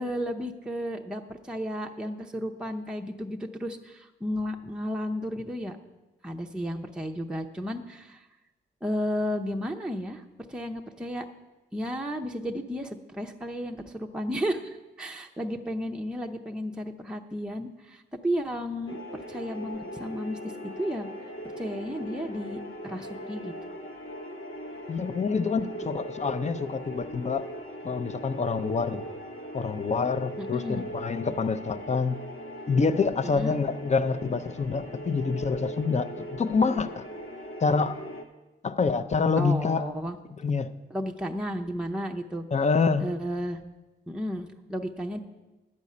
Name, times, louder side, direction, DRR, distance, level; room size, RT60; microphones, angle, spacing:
voice 1, 0.0-5.8 6.2-8.2 8.8-10.2 10.5-11.3 11.7-21.1 21.6-23.5 25.9-26.0 30.4-30.8 33.2-33.6 39.4-40.2 40.9-42.4 43.0-43.6 44.1-45.2, equal, 5° right, 2 dB, 0.6 m, -33 dB
sound 1, 18.9-38.2, equal, 90° left, 1.1 m, -40 dB
voice 2, 24.9-27.4 27.8-29.0 29.5-32.2 32.7-37.0 37.6-38.0 38.6-39.9 40.4-40.7 42.5-43.1, left 4 dB, 35° left, 10 dB, 0.6 m, -26 dB
11.0 x 5.4 x 8.4 m, 1.1 s
cardioid pair, 90°, 20 cm